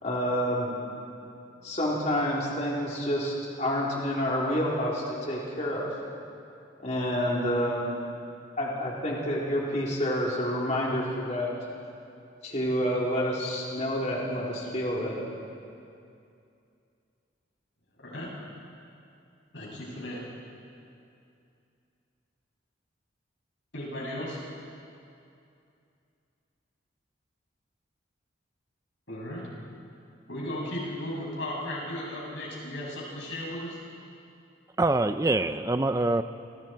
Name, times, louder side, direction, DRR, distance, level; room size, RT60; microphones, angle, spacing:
voice 1, 0.0-0.7 1.6-5.9 6.8-7.9 8.6-11.5 12.4-15.2, equal, 35° left, -4 dB, 3.9 m, -28 dB
voice 2, 18.0-18.3 19.5-20.2 23.7-24.4 29.1-29.5 30.3-33.8, left 1 dB, 70° left, -3 dB, 7.8 m, -35 dB
voice 3, 34.8-36.2, right 2 dB, 15° right, 10 dB, 0.5 m, -24 dB
28.5 x 26.5 x 4.7 m, 2.5 s
head